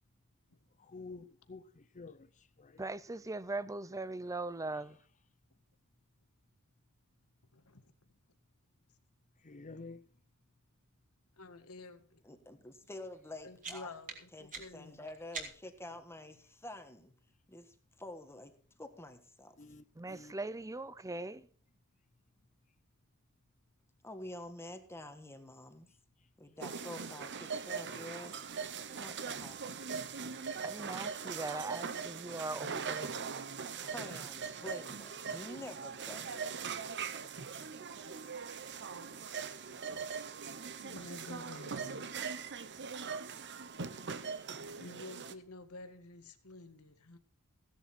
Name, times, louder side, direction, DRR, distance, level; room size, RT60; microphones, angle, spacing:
voice 1, 0.9-2.3 2.6-2.8 9.4-10.0 19.6-20.3 32.7-32.9 35.2-35.4, left 3 dB, 35° left, 0.7 m, -50 dB
voice 2, 2.8-5.0 20.0-21.5 30.6-33.2, right 2 dB, 15° right, 0.6 m, -40 dB
voice 3, 7.5-7.9 11.4-12.2 13.4-15.0 40.8-42.1 44.8-47.2, left 2 dB, 75° left, 1.8 m, -50 dB
voice 4, 12.2-13.9 14.3-17.1 17.5-18.5 18.8-19.5 24.0-25.9 26.4-28.4 28.9-29.8 33.8-36.4, left 1 dB, 10° left, 1.5 m, -48 dB
sound 1, 13.2-15.9, right 4 dB, 35° right, 3.5 m, -47 dB
sound 2, 26.6-45.3, right 6 dB, 55° right, 1.0 m, -41 dB
16.0 x 11.5 x 4.4 m
head